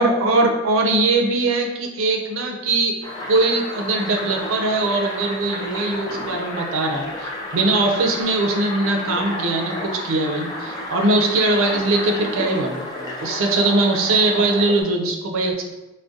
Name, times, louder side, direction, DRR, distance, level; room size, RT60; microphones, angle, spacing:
voice 1, 0.0-2.9 3.3-15.7, right 2 dB, 85° right, 2 dB, 0.5 m, -21 dB
sound 1, 3.0-14.8, left 1 dB, 20° left, 0.4 m, -32 dB
2.5 x 2.1 x 3.6 m, 1.1 s
head